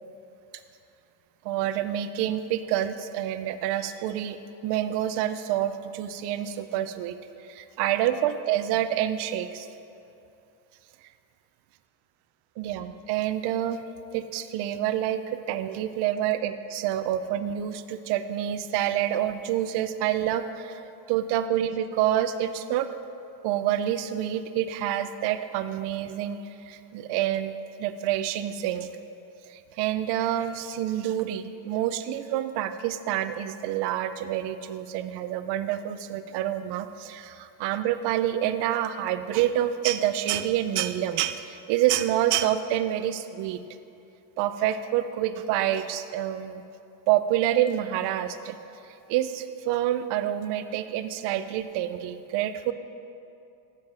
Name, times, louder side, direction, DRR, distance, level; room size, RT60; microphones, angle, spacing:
voice 1, 1.4-4.4 4.6-9.7 12.6-13.8 14.1-22.9 23.4-26.4 26.6-27.5 27.8-28.9 29.5-43.6 44.4-46.6 47.1-48.6 49.1-52.7, right 11 dB, 55° right, 11 dB, 0.5 m, -27 dB
7.7 x 7.5 x 4.8 m, 2.6 s
cardioid pair, 180°, 49 cm